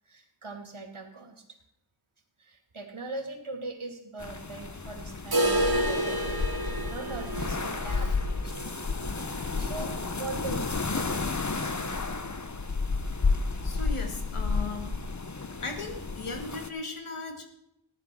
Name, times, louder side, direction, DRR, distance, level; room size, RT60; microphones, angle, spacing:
voice 1, 0.1-1.4 2.4-8.6 9.2-12.3, right 3 dB, 75° right, 4 dB, 2.6 m, -41 dB
sound 1, 4.2-16.7, left 4 dB, 35° left, 1.0 m, -31 dB
sound 2, 5.3-11.1 11.4-11.5 11.9-12.0 12.5-12.6 13.4-13.5, right 1 dB, 45° right, 2.4 m, -31 dB
voice 2, 13.6-14.9 15.6-17.4, left 3 dB, 80° left, 5 dB, 2.1 m, -37 dB
14.5 x 10.0 x 6.1 m, 0.84 s
wide cardioid pair, 70°, 49 cm